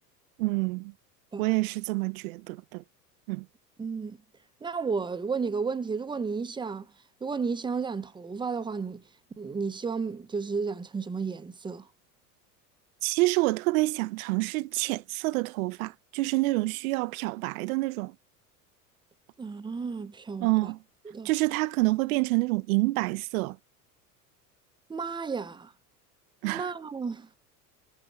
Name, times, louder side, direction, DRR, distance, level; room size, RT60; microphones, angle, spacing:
voice 1, 0.4-0.9 1.4-2.8 3.3-3.4 13.0-18.1 20.4-20.8 21.2-23.6 26.4-26.7, right 22 dB, 65° right, 0.5 m, -27 dB
voice 2, 3.8-4.2 4.6-6.9 7.2-9.0 9.4-11.9 19.4-20.7 21.0-21.3 24.9-25.7 26.4-27.3, right 5 dB, 10° right, 0.6 m, -32 dB
8.8 x 4.3 x 3.2 m
hypercardioid pair, 80°, 46 cm